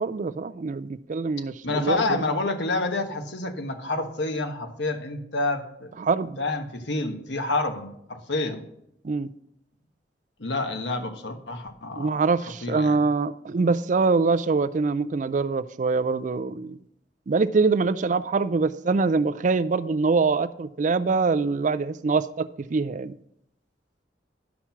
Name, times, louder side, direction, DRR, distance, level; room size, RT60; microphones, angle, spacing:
voice 1, 0.0-2.2 6.0-6.4 9.0-9.3 12.0-16.8 17.3-23.1, right 4 dB, 45° right, 14 dB, 0.4 m, -24 dB
voice 2, 1.6-6.0 6.4-8.6 10.4-12.2 12.6-13.0, left 2 dB, 75° left, 6 dB, 1.4 m, -28 dB
11.0 x 6.0 x 5.8 m, 0.75 s
head